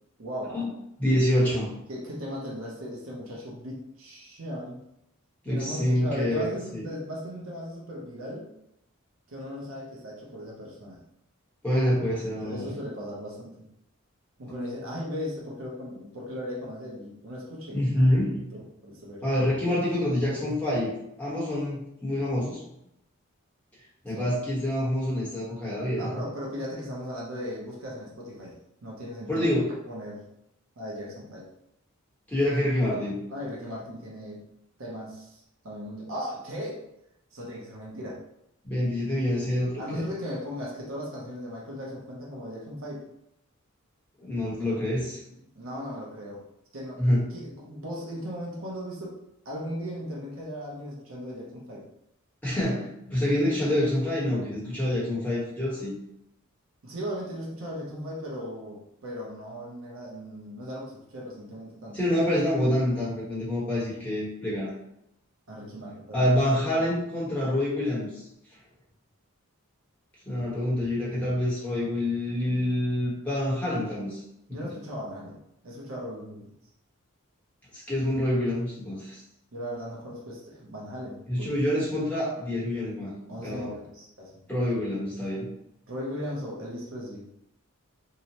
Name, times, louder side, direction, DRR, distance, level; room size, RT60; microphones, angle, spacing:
voice 1, 0.2-0.6 1.9-4.8 5.5-8.5 9.3-11.0 12.3-13.7 14.4-18.2 18.5-19.5 24.1-24.3 25.9-28.6 28.8-29.6 29.9-30.2 30.8-31.5 33.3-34.5 34.8-36.8 37.3-38.2 39.8-43.0 45.5-46.4 46.7-47.0 47.3-49.2 49.4-51.9 53.5-53.7 56.8-62.0 65.5-66.9 74.5-76.5 79.5-81.6 83.3-84.4 85.9-87.3, equal, 65° right, -4 dB, 0.6 m, -37 dB
voice 2, 1.0-1.7 5.4-6.9 11.6-12.7 17.7-18.4 19.2-20.9 21.2-22.6 24.0-26.1 29.3-29.7 32.3-33.2 38.6-40.0 44.2-45.2 47.0-47.2 52.4-55.9 61.9-64.7 66.1-68.2 70.3-74.2 74.6-74.7 77.7-79.2 81.3-83.7 84.5-85.5, left 1 dB, 5° left, -8 dB, 0.9 m, -26 dB
2.7 x 2.1 x 2.8 m, 0.81 s
head